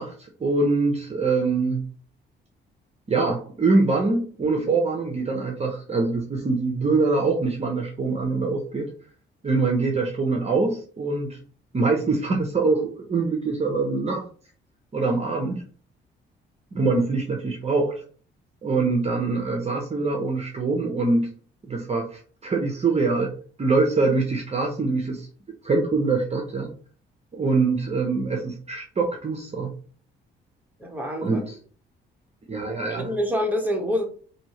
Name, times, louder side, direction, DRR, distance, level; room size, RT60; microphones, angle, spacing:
voice 1, 0.0-1.9 3.1-8.9 9.4-11.4 11.7-14.2 14.9-15.6 16.7-17.9 18.6-21.3 21.7-23.3 23.6-25.3 25.6-26.7 27.3-29.7 31.2-31.6 32.5-33.1, right 3 dB, 30° right, 0.8 m, -24 dB
voice 2, 30.8-31.4 33.0-34.1, equal, 10° right, 1.3 m, -26 dB
4.5 x 2.8 x 3.0 m
cardioid pair, 90°, 20 cm